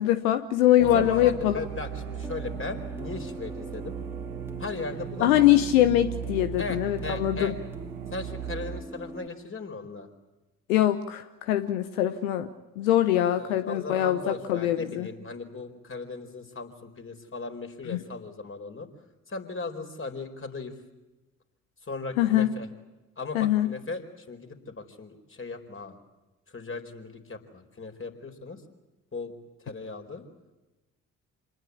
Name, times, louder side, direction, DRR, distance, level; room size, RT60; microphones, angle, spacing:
voice 1, 0.0-1.6 5.2-7.5 10.7-12.5 12.8-15.1 17.9-18.0 22.2-22.5 23.3-23.7, left 13 dB, 80° left, 10 dB, 1.0 m, -23 dB
voice 2, 0.8-3.9 4.6-5.4 6.6-7.5 8.1-10.1 13.4-18.9 19.3-20.7 21.9-22.7 23.2-26.0 26.5-28.6 29.1-29.3 29.6-30.2, left 3 dB, 30° left, 6 dB, 4.5 m, -37 dB
sound 1, 0.8-8.8, right 9 dB, 80° right, 1.0 m, -37 dB
sound 2, 1.5-9.3, right 2 dB, 5° right, 2.3 m, -43 dB
27.0 x 20.5 x 8.6 m, 1.1 s
hypercardioid pair, 45°, 40 cm